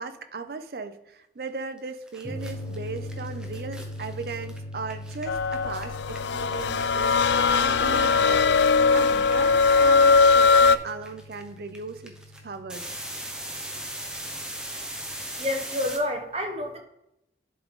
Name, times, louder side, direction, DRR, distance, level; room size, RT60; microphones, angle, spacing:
voice 1, 0.0-12.1 12.4-12.9, right 4 dB, 60° right, 9 dB, 0.5 m, -37 dB
sound 1, 1.8-1.9 2.1-7.6 7.8-16.0, right 1 dB, 5° right, 0.7 m, -39 dB
sound 2, 2.2-15.2, left 1 dB, 20° left, 2.1 m, -41 dB
sound 3, 5.3-10.8, left 4 dB, 80° left, 0.3 m, -20 dB
voice 2, 15.4-16.8, left 1 dB, 35° right, 4 dB, 0.9 m, -28 dB
11.0 x 3.8 x 3.6 m, 0.83 s
head